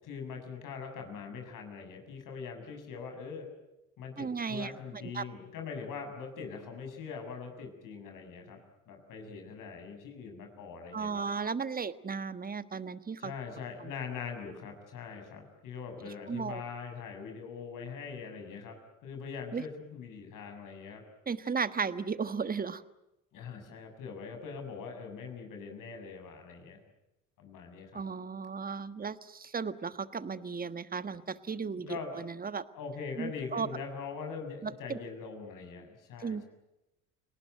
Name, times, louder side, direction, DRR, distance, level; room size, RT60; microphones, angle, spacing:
voice 1, 0.0-3.5 4.0-8.6 8.9-11.3 13.2-18.7 19.0-21.0 23.3-26.8 27.4-28.0 31.7-32.2 32.7-36.4, left 5 dB, 60° left, 4 dB, 7.0 m, -42 dB
voice 2, 4.2-4.7 5.1-5.2 10.9-13.3 13.8-13.9 16.3-16.6 19.5-19.6 21.3-22.8 27.9-32.6 33.2-33.7 34.6-35.0 36.2-36.4, right 5 dB, 25° right, 13 dB, 1.5 m, -35 dB
30.0 x 19.5 x 9.3 m, 0.94 s
hypercardioid pair, 55°, 35 cm